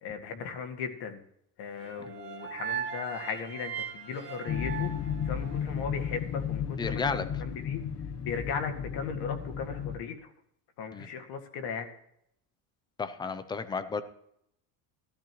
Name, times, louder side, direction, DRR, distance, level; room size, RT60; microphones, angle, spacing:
voice 1, 0.0-1.2 1.6-4.9 5.3-7.8 8.2-10.3 10.8-11.9, left 6 dB, 55° left, 5 dB, 2.0 m, -37 dB
sound 1, 1.8-6.0, right 8 dB, 20° right, 2.4 m, -39 dB
sound 2, 4.5-10.0, left 8 dB, 30° left, 1.0 m, -34 dB
voice 2, 6.8-7.3 10.9-11.1 13.0-14.0, left 5 dB, 10° left, 12 dB, 0.3 m, -32 dB
16.5 x 13.0 x 3.0 m, 0.74 s
cardioid pair, 155°, 48 cm